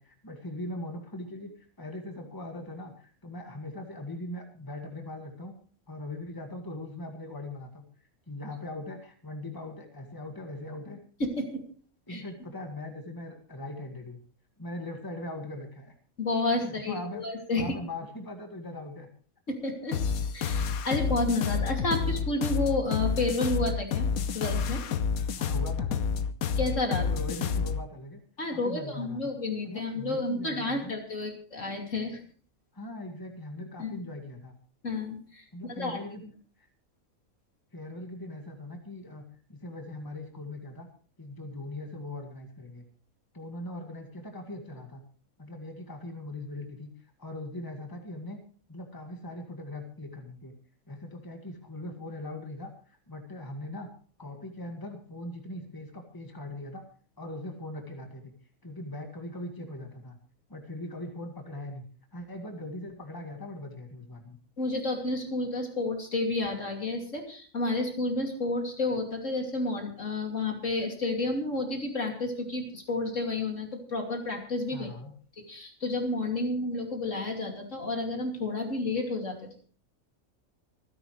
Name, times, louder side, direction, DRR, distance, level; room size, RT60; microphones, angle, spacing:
voice 1, 0.0-1.5 1.8-5.5 5.9-7.8 8.3-11.0 12.1-14.2 14.6-15.9 16.6-17.2 17.5-19.1 25.4-26.0 26.9-28.2 28.5-29.3 29.6-30.9 32.7-34.5 35.5-36.3 36.6-36.7 37.7-39.2 39.5-40.9 41.2-42.8 43.3-45.0 45.4-46.9 47.2-48.4 48.7-50.5 50.9-53.9 54.2-56.8 57.2-58.3 58.6-60.2 60.5-61.9 62.1-64.4 74.7-75.1, left 1 dB, 15° left, 3 dB, 2.0 m, -40 dB
voice 2, 11.2-11.6 12.1-12.2 16.2-17.7 19.5-20.0 20.3-24.1 24.3-24.8 26.6-27.0 28.4-32.2 33.8-33.9 34.8-36.0 64.6-74.9 75.4-79.4, left 2 dB, 60° left, 2 dB, 3.2 m, -31 dB
sound 1, 19.9-27.8, left 6 dB, 80° left, 1.3 m, -29 dB
26.0 x 10.5 x 3.3 m, 0.42 s
omnidirectional pair, 1.5 m